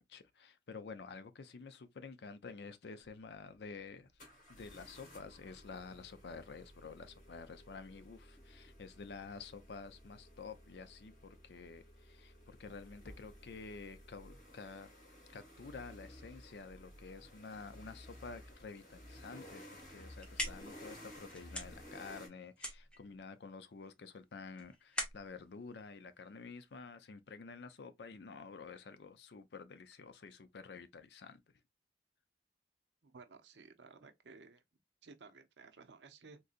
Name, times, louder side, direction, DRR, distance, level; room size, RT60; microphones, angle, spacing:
voice 1, 0.0-4.1 4.5-14.9 15.3-19.6 19.9-31.4, left 4 dB, 70° left, 0.5 m, -50 dB
sound 1, 3.0-3.1 4.2-22.3, equal, 50° left, 1.9 m, -55 dB
sound 2, 20.0-26.8, equal, 5° left, 0.7 m, -45 dB
voice 2, 33.0-34.6 35.0-36.4, right 4 dB, 85° right, 0.7 m, -56 dB
3.8 x 2.7 x 2.4 m
head